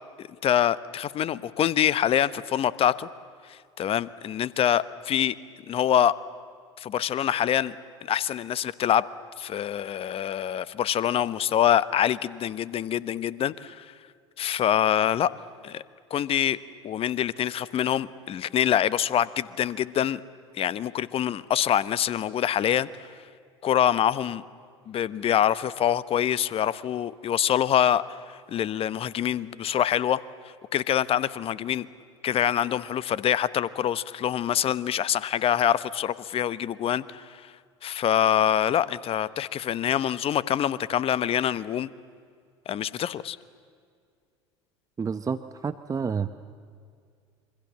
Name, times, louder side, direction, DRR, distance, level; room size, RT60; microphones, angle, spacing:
voice 1, 0.2-3.1 3.5-5.3 5.7-6.1 6.8-7.8 8.1-9.1 9.4-13.9 14.4-15.3 15.6-15.8 16.1-16.6 16.8-20.2 20.6-22.9 23.6-24.4 24.9-28.0 28.5-30.2 30.7-31.9 32.2-37.4 37.8-41.9 42.7-43.4, left 10 dB, 40° left, 17 dB, 1.0 m, -25 dB
voice 2, 45.0-46.3, right 6 dB, 25° right, 12 dB, 0.9 m, -29 dB
26.5 x 25.0 x 7.4 m, 2.2 s
hypercardioid pair, 70°, 15 cm